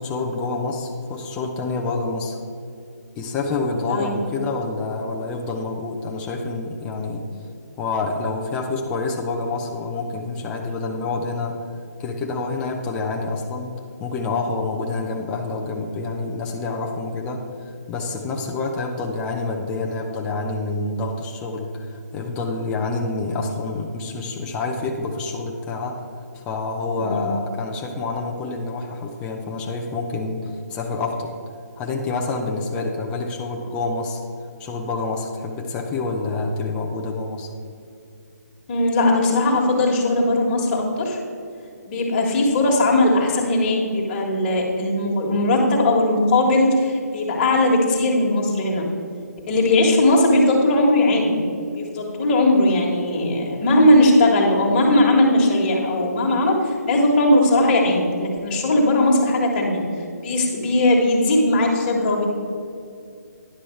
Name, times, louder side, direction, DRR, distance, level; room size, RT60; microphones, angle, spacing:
voice 1, 0.0-2.4 3.2-7.3 7.8-11.6 12.0-26.0 26.3-31.4 31.8-34.2 34.6-37.5, left 3 dB, 10° left, 1 dB, 0.5 m, -27 dB
voice 2, 27.0-27.3 38.7-41.2 41.8-48.8 49.5-51.4 51.7-59.8 60.2-62.2, left 1 dB, 30° left, -2 dB, 1.6 m, -19 dB
9.9 x 6.1 x 4.5 m, 2.4 s
figure-of-eight pair, 150°, 9 cm